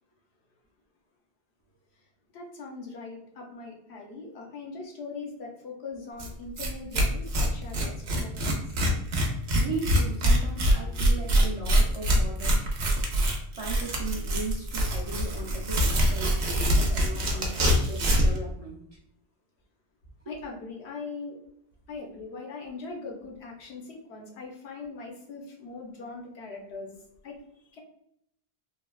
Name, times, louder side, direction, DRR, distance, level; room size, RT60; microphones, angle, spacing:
voice 1, 2.3-8.6 20.3-21.4 21.9-26.9 27.2-27.4 27.7-27.8, left 3 dB, 80° left, 0 dB, 1.0 m, -41 dB
Tearing, 6.2-6.3 6.6-6.7 6.9-18.4, equal, 80° right, 0.9 m, -24 dB
voice 2, 9.5-12.6 13.5-18.8 20.3-20.4, right 3 dB, 40° right, -4 dB, 0.6 m, -37 dB
3.1 x 2.1 x 2.3 m, 0.75 s
omnidirectional pair, 1.1 m